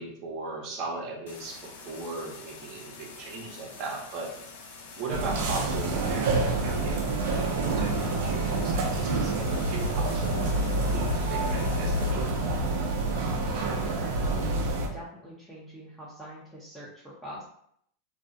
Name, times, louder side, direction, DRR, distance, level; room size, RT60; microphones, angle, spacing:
voice 1, 0.0-4.3 4.9-7.0 7.3-12.3, right 3 dB, 50° right, -1 dB, 0.8 m, -38 dB
sound 1, 1.3-12.1, left 4 dB, 75° left, 0.5 m, -46 dB
sound 2, 5.1-14.9, right 2 dB, 70° right, 0.5 m, -27 dB
voice 2, 13.4-17.4, equal, 5° left, -9 dB, 0.7 m, -43 dB
2.4 x 2.0 x 2.6 m, 0.69 s
hypercardioid pair, 115°, 0 cm